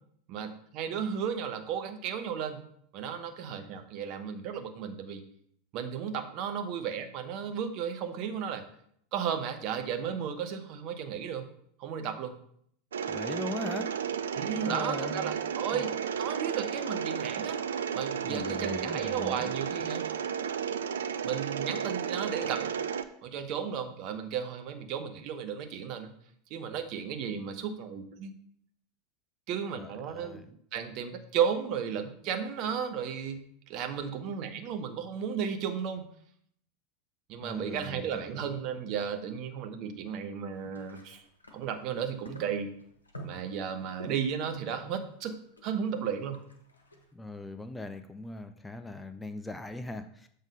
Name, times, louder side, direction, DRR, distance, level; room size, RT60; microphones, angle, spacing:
voice 1, 0.3-2.6 2.9-5.2 5.7-8.7 9.1-11.5 11.8-12.3 14.3-17.6 17.9-20.1 21.2-22.8 23.2-26.1 26.5-28.3 29.5-36.1 37.3-41.2 41.5-42.7 43.2-46.4, right 7 dB, 45° right, 8 dB, 0.9 m, -34 dB
Mechanisms, 12.9-23.0, right 7 dB, 70° right, 0.4 m, -33 dB
voice 2, 13.1-13.9 14.6-15.3 15.7-15.8 18.2-19.5 29.7-30.5 37.4-38.5 47.1-50.3, left 2 dB, 10° left, 8 dB, 0.4 m, -40 dB
sound 1, 40.5-47.0, left 1 dB, 85° left, 1.0 m, -49 dB
7.1 x 3.7 x 5.4 m, 0.66 s
figure-of-eight pair, 80°, 0 cm